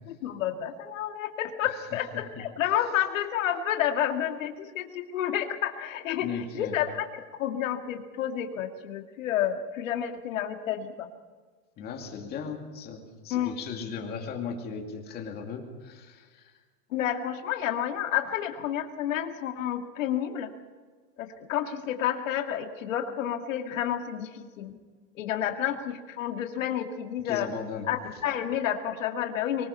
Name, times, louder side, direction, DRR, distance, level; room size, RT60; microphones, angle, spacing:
voice 1, 0.1-7.1 7.4-11.1 13.3-13.5 16.9-20.5 21.2-24.7 25.2-27.5 27.9-29.7, left 10 dB, 50° left, 5 dB, 2.3 m, -30 dB
voice 2, 6.2-6.7 11.8-16.5 27.2-27.9, left 6 dB, 20° left, 2 dB, 2.6 m, -37 dB
24.0 x 20.0 x 5.6 m, 1.4 s
hypercardioid pair, 160°, 48 cm